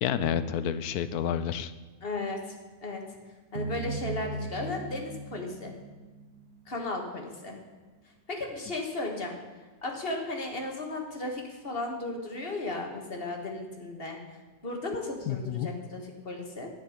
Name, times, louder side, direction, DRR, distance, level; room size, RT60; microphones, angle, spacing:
voice 1, 0.0-1.7 15.3-15.7, left 9 dB, 75° left, 13 dB, 1.1 m, -29 dB
voice 2, 2.0-2.5 2.8-3.0 3.5-5.7 6.7-7.6 8.3-9.4 9.8-14.2 14.6-16.7, left 2 dB, 35° left, 1 dB, 1.8 m, -35 dB
sound 1, 3.6-6.8, right 3 dB, 60° right, 1.4 m, -38 dB
10.5 x 9.7 x 5.0 m, 1.3 s
omnidirectional pair, 1.7 m